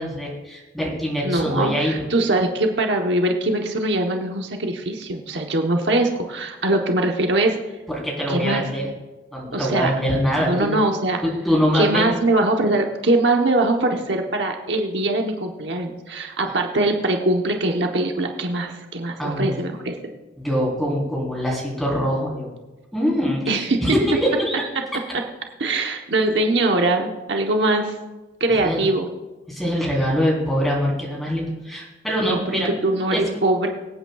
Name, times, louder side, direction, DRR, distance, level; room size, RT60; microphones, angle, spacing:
voice 1, 0.0-2.0 7.9-8.9 9.3-10.8 11.2-12.1 19.2-19.6 20.4-22.5 22.9-24.7 28.6-28.9 29.5-32.7 33.1-33.2, equal, ahead, -4 dB, 3.7 m, -23 dB
voice 2, 1.2-7.6 8.3-8.7 9.5-10.0 10.5-11.2 11.7-20.0 23.5-23.8 25.6-28.0 28.4-29.1 32.2-33.7, right 2 dB, 70° right, 2 dB, 1.0 m, -22 dB
24.5 x 8.8 x 2.4 m, 1.2 s
head